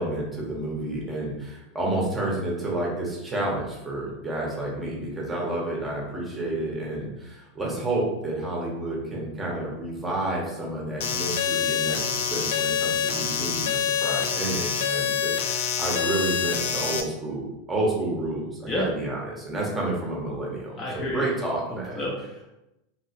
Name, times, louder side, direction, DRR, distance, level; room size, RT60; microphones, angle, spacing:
voice 1, 0.0-22.0, right 2 dB, 15° right, -3 dB, 0.8 m, -30 dB
sound 1, 11.0-17.0, left 7 dB, 70° left, 0.4 m, -26 dB
voice 2, 20.8-21.3 21.7-22.5, left 1 dB, 20° left, -4 dB, 0.6 m, -31 dB
3.0 x 2.8 x 2.8 m, 0.91 s
supercardioid pair, 155°, 0 cm